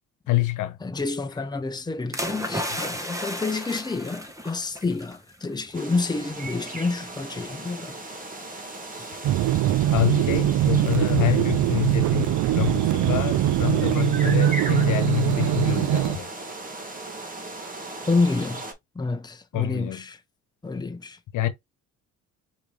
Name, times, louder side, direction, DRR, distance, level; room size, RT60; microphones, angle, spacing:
voice 1, 0.3-0.8 9.9-16.3 19.5-20.0 21.3-21.5, left 15 dB, 85° left, 1.1 m, -26 dB
voice 2, 0.8-8.0 18.1-18.7 18.9-20.2 20.6-21.2, left 3 dB, 15° left, 0.8 m, -28 dB
sound 1, 2.1-5.2 5.5-5.7, equal, 10° right, 1.4 m, -33 dB
sound 2, 5.7-18.7, right 2 dB, 25° right, 1.9 m, -37 dB
sound 3, 9.2-16.2, right 13 dB, 75° right, 0.5 m, -22 dB
4.8 x 3.1 x 3.3 m
cardioid pair, 90°, 30 cm